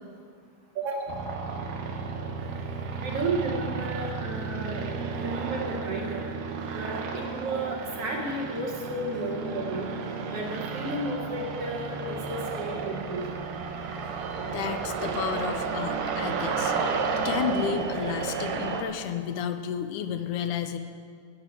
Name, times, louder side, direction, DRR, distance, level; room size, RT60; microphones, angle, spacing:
voice 1, 0.8-1.2 3.0-4.8 5.2-6.3 6.7-9.9 10.3-13.3, right 2 dB, 55° right, 0 dB, 1.9 m, -33 dB
sound 1, 1.1-18.8, right 5 dB, 80° right, 2.5 m, -32 dB
voice 2, 14.5-16.7 17.1-20.8, left 7 dB, 85° left, 8 dB, 2.0 m, -32 dB
13.5 x 5.8 x 8.5 m, 2.1 s
omnidirectional pair, 3.6 m